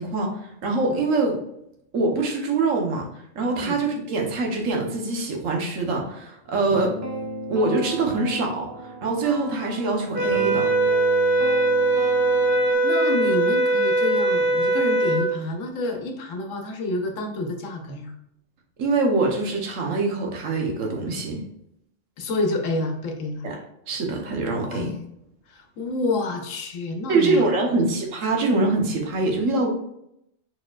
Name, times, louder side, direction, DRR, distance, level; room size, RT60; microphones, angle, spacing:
voice 1, 0.0-1.4 1.9-3.1 3.3-6.9 7.5-10.7 18.8-21.4 23.4-23.6 23.9-24.9 27.1-29.7, right 3 dB, 80° right, 1 dB, 1.3 m, -24 dB
sound 1, 6.7-12.7, right 2 dB, 20° right, 0.5 m, -35 dB
sound 2, 10.1-15.3, right 2 dB, 50° right, 1.0 m, -21 dB
voice 2, 12.8-18.1 22.2-23.5 24.7-25.0 25.5-27.8, left 2 dB, 75° left, 4 dB, 1.1 m, -28 dB
4.8 x 4.3 x 2.3 m, 0.78 s
omnidirectional pair, 1.3 m